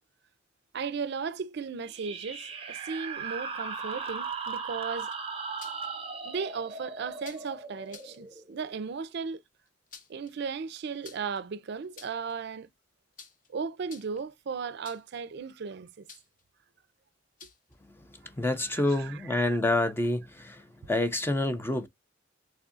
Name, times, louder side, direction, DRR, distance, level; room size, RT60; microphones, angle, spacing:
voice 1, 0.7-5.1 6.2-9.4 10.1-12.7 13.5-16.1 18.6-19.9, right 5 dB, 60° right, 0.4 m, -36 dB
sound 1, 1.8-9.1, right 5 dB, 30° right, 0.7 m, -38 dB
sound 2, 5.0-5.9 7.2-7.5 7.9-8.2 9.7-10.3 11.0-11.4 11.8-12.3 13.2-13.5 13.8-14.3 14.8-15.2 16.1-16.4 17.4-17.7, left 5 dB, 45° left, 0.9 m, -50 dB
voice 2, 18.4-20.6 20.9-21.9, left 2 dB, 10° left, 0.5 m, -27 dB
3.6 x 3.5 x 2.5 m
head